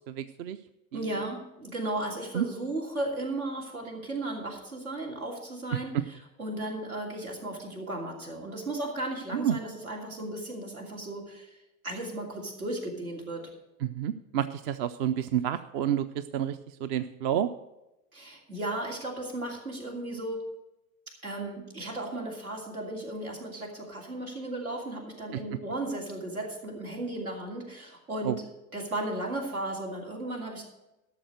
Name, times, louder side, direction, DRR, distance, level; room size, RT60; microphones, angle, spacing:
voice 1, 0.1-0.6 2.3-2.4 9.3-9.6 13.8-17.5 25.3-25.4 28.2-28.3, right 10 dB, 45° right, 12 dB, 0.6 m, -29 dB
voice 2, 0.9-11.6 11.8-13.5 18.1-20.4 21.2-30.6, right 1 dB, 80° right, 0 dB, 2.9 m, -35 dB
12.5 x 6.7 x 6.5 m, 0.96 s
figure-of-eight pair, 80°, 42 cm